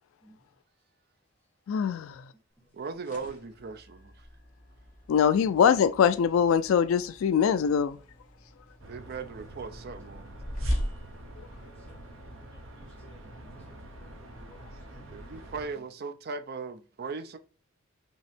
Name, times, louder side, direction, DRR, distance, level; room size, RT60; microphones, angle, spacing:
voice 1, 1.7-2.2 5.1-8.0, left 7 dB, 75° left, 0.3 m, -23 dB
sound 1, 2.7-12.1, equal, 40° left, 1.2 m, -40 dB
voice 2, 2.7-4.3 8.9-10.4 15.1-17.4, right 4 dB, 50° right, 0.5 m, -38 dB
sound 2, 8.8-15.7, right 1 dB, 70° right, 0.8 m, -46 dB
voice 3, 12.5-15.4, equal, 5° left, 1.2 m, -57 dB
5.2 x 2.9 x 3.4 m
head